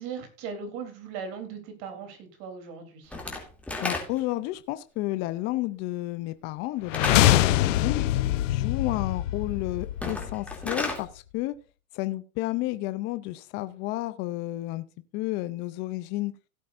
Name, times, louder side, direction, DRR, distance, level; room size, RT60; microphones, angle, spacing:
voice 1, 0.0-3.1, right 6 dB, 45° right, 7 dB, 3.4 m, -38 dB
Slam / Wood, 3.1-4.4 6.9-7.5 9.9-11.0, left 2 dB, 5° left, 2.6 m, -32 dB
voice 2, 3.8-8.0 8.5-11.5 11.9-14.8 15.1-16.3, left 17 dB, 25° left, 13 dB, 0.4 m, -31 dB
sound 1, 6.9-10.8, left 14 dB, 60° left, 0.8 m, -24 dB
17.0 x 8.5 x 2.5 m, 0.33 s
hypercardioid pair, 130°, 42 cm